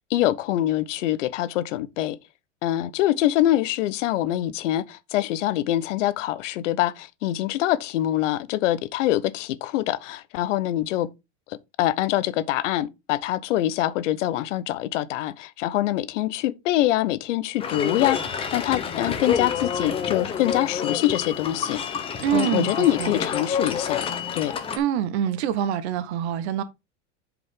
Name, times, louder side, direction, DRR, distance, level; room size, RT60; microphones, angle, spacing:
voice 1, 0.1-2.2 2.6-11.1 11.5-22.1 22.3-24.1 24.3-24.5, left 14 dB, 85° left, 0.9 m, -24 dB
sound 1, 17.6-24.8, left 7 dB, 15° left, 0.8 m, -28 dB
voice 2, 22.2-23.1 24.8-26.6, right 10 dB, 60° right, 1.1 m, -25 dB
8.0 x 5.1 x 3.7 m
supercardioid pair, 165°, 36 cm